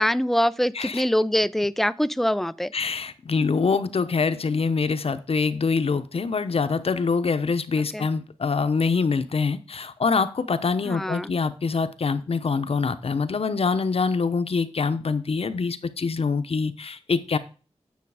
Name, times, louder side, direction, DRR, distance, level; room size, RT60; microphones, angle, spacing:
voice 1, 0.0-2.7 7.9-8.1 10.8-11.3, equal, 5° left, 0.4 m, -24 dB
voice 2, 2.7-17.4, left 4 dB, 65° left, 0.8 m, -25 dB
9.4 x 6.5 x 4.9 m
wide cardioid pair, 95°, 11 cm